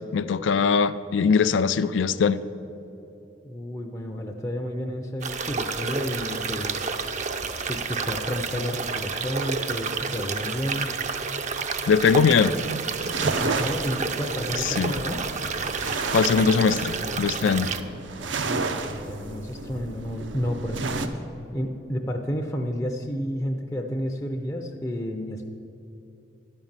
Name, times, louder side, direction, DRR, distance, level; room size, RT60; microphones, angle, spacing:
voice 1, 0.1-2.4 11.9-12.5 14.6-14.9 16.1-17.7, left 5 dB, 85° left, 14 dB, 0.4 m, -21 dB
voice 2, 3.4-7.0 7.7-10.9 13.2-15.2 18.2-21.3 21.5-25.5, equal, 15° left, 1 dB, 0.5 m, -31 dB
sound 1, 5.2-17.8, right 5 dB, 40° right, 0.5 m, -30 dB
sound 2, 13.0-21.1, right 3 dB, 85° right, 0.6 m, -32 dB
11.5 x 5.3 x 7.3 m, 2.9 s
head